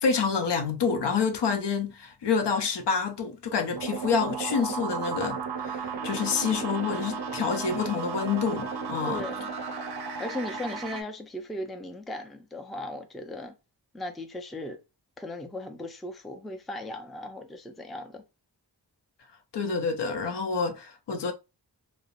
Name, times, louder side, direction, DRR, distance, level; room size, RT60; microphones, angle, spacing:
voice 1, 0.0-9.2 19.5-21.3, left 5 dB, 75° left, 0.6 m, -28 dB
sound 1, 3.7-11.0, right 6 dB, 65° right, 0.5 m, -34 dB
sound 2, 5.9-10.9, left 1 dB, 30° left, 0.6 m, -42 dB
voice 2, 9.0-9.5 10.2-13.5 13.9-14.8 15.2-18.3, left 1 dB, ahead, 0.3 m, -37 dB
2.4 x 2.0 x 2.7 m
wide cardioid pair, 65°, 42 cm